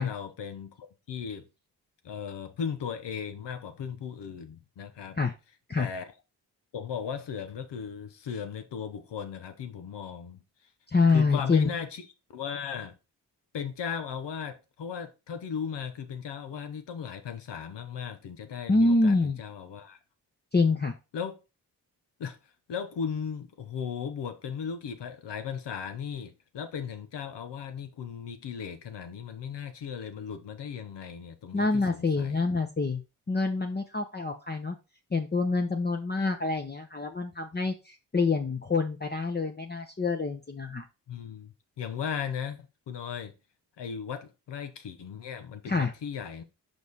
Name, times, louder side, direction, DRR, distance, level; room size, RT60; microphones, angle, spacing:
voice 1, 0.0-1.4 2.0-5.2 5.8-6.0 6.7-10.4 11.1-12.1 12.3-12.9 13.5-20.0 21.1-21.4 22.2-32.4 41.1-43.3 43.8-46.4, left 7 dB, 80° left, 0.9 m, -37 dB
voice 2, 10.9-11.7 18.7-19.4 20.5-20.9 31.5-33.0 33.3-34.8 35.1-40.9 45.7-45.9, left 3 dB, 25° left, 0.8 m, -26 dB
5.3 x 5.0 x 4.0 m
supercardioid pair, 40°, 41 cm